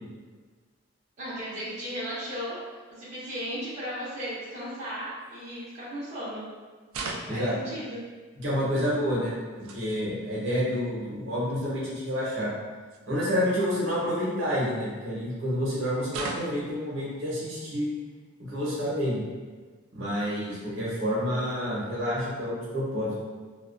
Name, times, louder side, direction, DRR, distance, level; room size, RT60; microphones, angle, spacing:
voice 1, 1.2-2.6 2.9-6.5 7.3-8.0, equal, 35° right, -11 dB, 0.6 m, -35 dB
sound 1, 5.2-5.4 6.9-7.5 9.3-10.1 11.2-11.3 11.5-11.7 12.9-13.0 14.0-15.0 16.1-16.7, right 3 dB, 85° right, 0.3 m, -38 dB
voice 2, 8.4-9.3 9.7-12.5 13.1-17.9 18.5-19.2 19.9-23.1, equal, 65° right, -7 dB, 0.8 m, -28 dB
2.3 x 2.2 x 2.4 m, 1.4 s
head